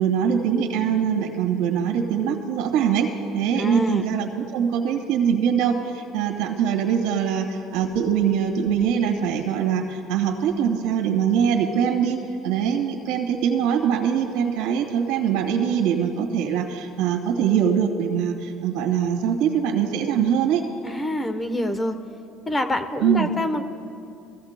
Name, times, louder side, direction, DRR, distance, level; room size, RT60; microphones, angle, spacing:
voice 1, 0.0-20.6 23.0-23.3, right 8 dB, 80° right, 2 dB, 1.7 m, -23 dB
voice 2, 3.5-4.0 20.8-21.9 22.5-23.6, left 1 dB, 20° left, 8 dB, 0.9 m, -26 dB
23.0 x 15.0 x 2.2 m, 2.4 s
supercardioid pair, 85°, 0 cm